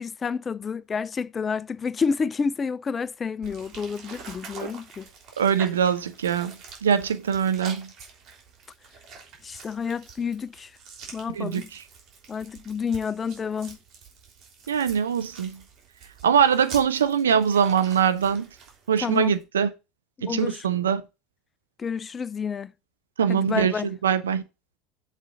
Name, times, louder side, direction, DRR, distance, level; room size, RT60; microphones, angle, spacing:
voice 1, 0.0-5.1 9.4-10.7 11.1-11.7 12.3-13.8 19.0-19.3 20.2-20.7 21.8-22.7 23.3-23.9, left 5 dB, 30° left, 0.4 m, -29 dB
sound 1, 3.4-19.4, right 5 dB, 50° right, 3.2 m, -45 dB
voice 2, 5.4-6.6 6.8-7.9 11.4-11.6 14.7-15.6 16.2-18.5 18.9-19.7 20.2-21.0 23.2-24.4, right 7 dB, 90° right, 0.6 m, -22 dB
7.5 x 4.1 x 5.2 m
hypercardioid pair, 80°, 0 cm